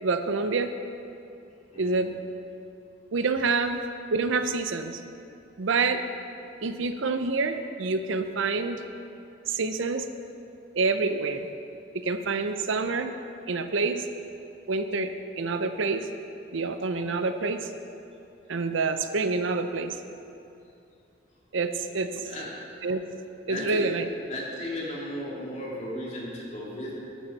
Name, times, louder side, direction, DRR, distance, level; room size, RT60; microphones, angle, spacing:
voice 1, 0.0-0.7 1.8-2.2 3.1-3.8 4.1-5.0 5.6-6.0 6.6-8.8 9.5-10.1 10.7-11.5 11.9-13.1 13.5-14.0 14.7-16.1 16.5-17.7 18.5-20.0 21.5-22.3 22.8-23.0 23.5-24.1, right 4 dB, 75° right, 9 dB, 0.6 m, -27 dB
voice 2, 22.2-22.6 23.5-23.9 24.3-26.9, left 1 dB, 35° left, -5 dB, 2.2 m, -35 dB
12.0 x 9.2 x 4.1 m, 2.7 s
head